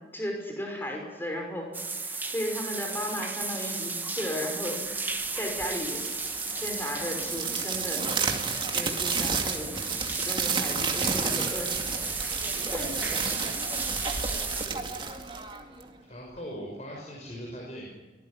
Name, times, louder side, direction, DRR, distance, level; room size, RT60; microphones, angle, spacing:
voice 1, 0.1-1.7 2.3-4.8 5.4-6.0 6.5-8.0 8.7-11.9 12.5-13.6, equal, 10° left, 1 dB, 5.5 m, -35 dB
sound 1, 1.7-14.7, right 3 dB, 10° right, 1.4 m, -34 dB
sound 2, 5.6-16.0, right 5 dB, 25° right, 2.2 m, -31 dB
voice 2, 14.4-14.9 16.0-17.9, equal, 40° left, -2 dB, 5.9 m, -41 dB
24.5 x 19.5 x 9.9 m, 1.2 s
head